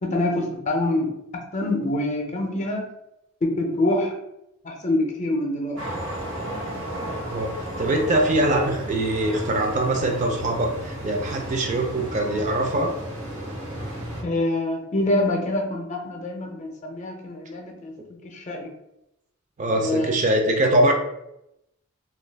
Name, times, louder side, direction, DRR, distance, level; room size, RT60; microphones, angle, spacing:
voice 1, 0.0-2.9 3.4-4.1 4.6-5.8 14.2-17.9 18.3-18.7 19.8-20.1, left 1 dB, 35° left, 2 dB, 0.5 m, -25 dB
sound 1, 5.8-14.2, right 1 dB, 75° right, 0.8 m, -33 dB
voice 2, 7.3-12.9 19.6-20.9, right 1 dB, 35° right, 2 dB, 0.4 m, -23 dB
2.3 x 2.2 x 3.4 m, 0.85 s
head